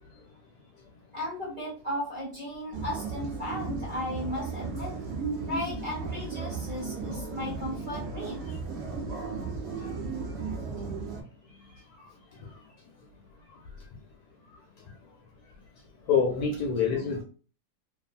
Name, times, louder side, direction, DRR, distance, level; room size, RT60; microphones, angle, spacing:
voice 1, 1.1-5.0 5.5-8.6, left 1 dB, 35° right, 0.9 m, -35 dB
sound 1, 2.7-11.2, right 4 dB, 60° right, 0.6 m, -35 dB
voice 2, 16.1-17.2, left 6 dB, 70° left, 0.9 m, -26 dB
2.7 x 2.5 x 2.4 m
omnidirectional pair, 2.0 m